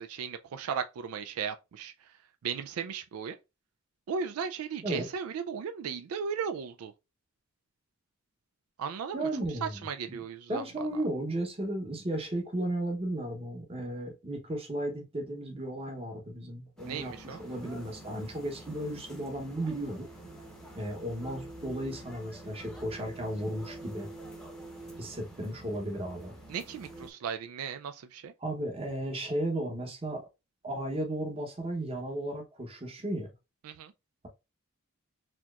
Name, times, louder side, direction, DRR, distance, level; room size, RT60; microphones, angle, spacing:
voice 1, 0.0-1.9 2.4-3.4 4.1-6.9 8.8-9.3 9.6-10.9 16.9-17.4 26.5-28.3 33.6-33.9, right 6 dB, 85° right, 0.3 m, -36 dB
voice 2, 9.1-10.2 10.5-20.1 20.8-24.1 25.0-26.3 28.4-30.3 30.6-33.3, right 1 dB, 25° right, 0.8 m, -35 dB
sound 1, 16.8-27.1, right 1 dB, 5° left, 0.7 m, -47 dB
4.2 x 2.9 x 2.3 m
head